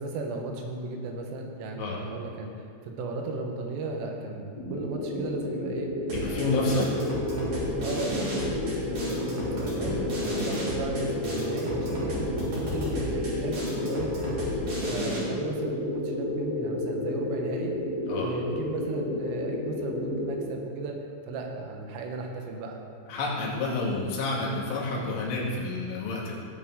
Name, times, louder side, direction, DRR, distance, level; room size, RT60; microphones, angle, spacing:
voice 1, 0.0-5.9 6.3-7.5 7.8-12.2 12.5-14.5 14.8-17.8 18.2-21.0 21.3-22.8, right 3 dB, 80° right, 2 dB, 3.7 m, -35 dB
sound 1, 4.6-20.4, left 1 dB, 25° left, 2.4 m, -31 dB
voice 2, 6.1-6.9 9.8-10.1 18.1-18.3 23.1-26.3, left 3 dB, 80° left, -4 dB, 4.5 m, -29 dB
sound 2, 6.1-15.2, right 1 dB, 45° right, 3.5 m, -35 dB
17.0 x 8.6 x 3.7 m, 2.2 s
omnidirectional pair, 5.8 m